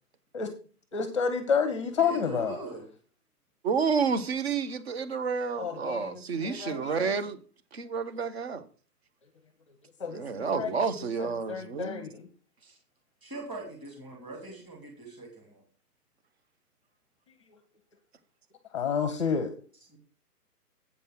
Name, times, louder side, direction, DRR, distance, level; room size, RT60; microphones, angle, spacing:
voice 1, 0.9-2.6 5.6-7.1 10.0-10.9 11.2-12.3 18.7-19.5, left 6 dB, 20° left, 0.8 m, -30 dB
voice 2, 2.0-2.9 12.6-12.8 13.2-15.6 19.9-20.0, right 2 dB, 10° right, 2.7 m, -42 dB
voice 3, 3.6-7.4 7.7-8.7 10.1-12.1, right 5 dB, 40° right, 0.9 m, -30 dB
8.5 x 5.4 x 5.8 m
hypercardioid pair, 150°, 48 cm